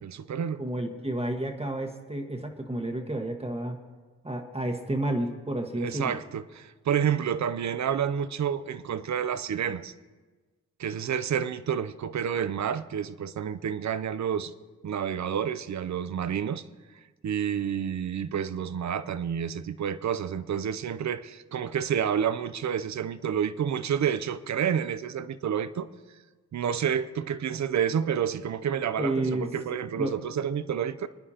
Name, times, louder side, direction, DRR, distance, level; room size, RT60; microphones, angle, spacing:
voice 1, 0.0-0.6 5.8-9.9 10.8-14.5 14.8-16.6 17.2-25.9 26.5-31.1, right 8 dB, 65° right, 0.6 m, -29 dB
voice 2, 0.6-3.8 4.2-6.2 29.0-29.5 30.0-30.1, right 1 dB, 20° right, 1.4 m, -30 dB
27.5 x 9.8 x 2.9 m
cardioid pair, 55°, 30 cm